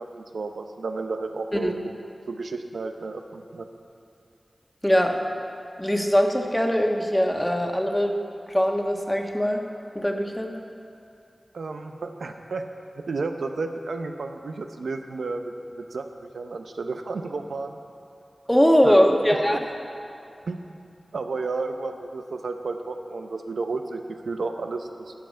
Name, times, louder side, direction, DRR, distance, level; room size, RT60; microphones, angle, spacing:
voice 1, 0.0-1.9 2.3-3.7 11.5-12.6 13.0-17.8 18.8-19.6 20.5-20.6 21.1-25.1, right 3 dB, 90° right, 6 dB, 0.7 m, -32 dB
voice 2, 4.8-5.2 5.8-8.1 8.5-9.6 9.9-10.5 18.5-19.6, equal, 10° left, 2 dB, 1.3 m, -21 dB
12.5 x 5.8 x 8.6 m, 2.6 s
cardioid pair, 45°, 0 cm